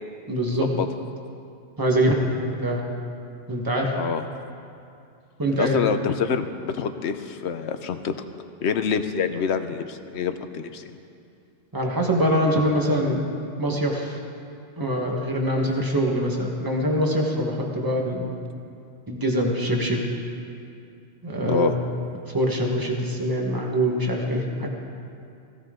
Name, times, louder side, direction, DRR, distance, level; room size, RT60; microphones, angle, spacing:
voice 1, 0.3-0.7 1.8-2.8 3.5-3.9 5.4-5.8 11.7-13.3 13.6-14.2 14.8-18.3 19.1-20.1 21.2-21.7 22.3-24.7, equal, 20° right, 0 dB, 1.4 m, -24 dB
voice 2, 3.9-4.3 5.5-8.1 8.6-10.9 21.5-21.7, left 6 dB, 70° left, 9 dB, 1.0 m, -26 dB
16.0 x 16.0 x 3.8 m, 2.5 s
omnidirectional pair, 1.2 m